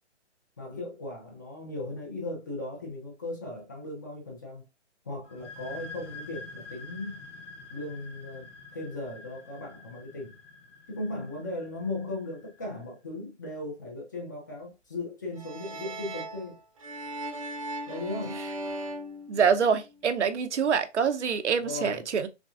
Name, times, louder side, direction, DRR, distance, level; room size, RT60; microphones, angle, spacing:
voice 1, 0.6-4.6 5.0-7.2 7.7-8.5 8.7-10.4 10.9-16.6 17.9-18.4 21.6-22.0, left 2 dB, 15° left, 0.6 m, -37 dB
sound 1, 5.2-12.7, left 3 dB, 80° left, 1.3 m, -47 dB
sound 2, 15.3-20.0, right 1 dB, 30° right, 0.7 m, -38 dB
voice 2, 19.3-22.3, right 6 dB, 75° right, 0.8 m, -25 dB
5.9 x 2.3 x 2.4 m
hypercardioid pair, 165°, 36 cm